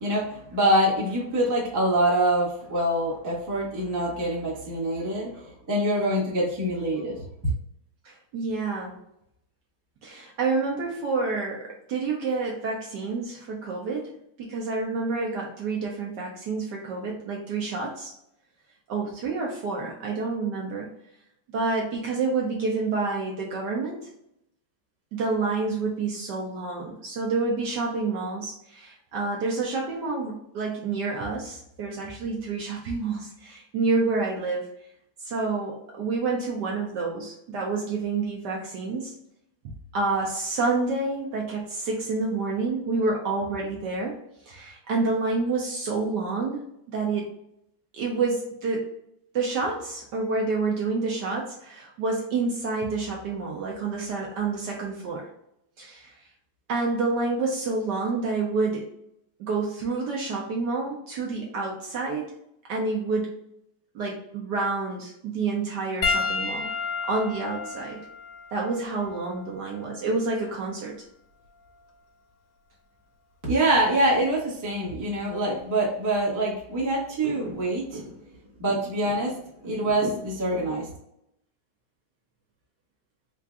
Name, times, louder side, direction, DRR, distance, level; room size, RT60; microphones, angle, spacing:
voice 1, 0.0-7.2 73.4-78.1 78.6-79.4 79.6-80.9, right 1 dB, 15° right, -5 dB, 0.6 m, -25 dB
voice 2, 8.0-9.0 10.0-14.1 14.4-18.1 18.9-20.9 21.5-24.1 25.1-34.7 35.2-39.1 39.6-44.1 44.4-47.3 47.9-48.9 49.3-55.3 55.8-56.1 56.7-58.9 59.4-62.3 62.7-63.4 63.9-66.7 67.1-68.0 68.5-71.0, right 3 dB, 65° right, -1 dB, 1.1 m, -28 dB
Piano, 66.0-70.7 71.6-71.8 73.8-73.9, left 4 dB, 85° left, 1.4 m, -32 dB
4.5 x 2.5 x 2.4 m, 0.77 s
omnidirectional pair, 2.3 m